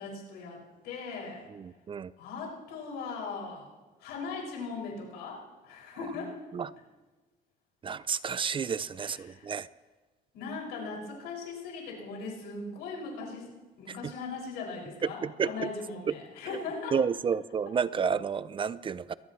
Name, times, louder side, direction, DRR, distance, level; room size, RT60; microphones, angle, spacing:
voice 1, 0.0-1.5 2.2-3.7 4.0-6.4 9.0-9.5 10.3-17.0, left 4 dB, 90° left, -2 dB, 6.2 m, -39 dB
voice 2, 1.5-2.1 6.5-6.7 7.8-9.7 13.9-14.1 15.0-15.7 16.9-19.1, right 6 dB, 30° right, 17 dB, 0.5 m, -31 dB
22.5 x 18.0 x 3.2 m, 1.3 s
cardioid pair, 110°, 17 cm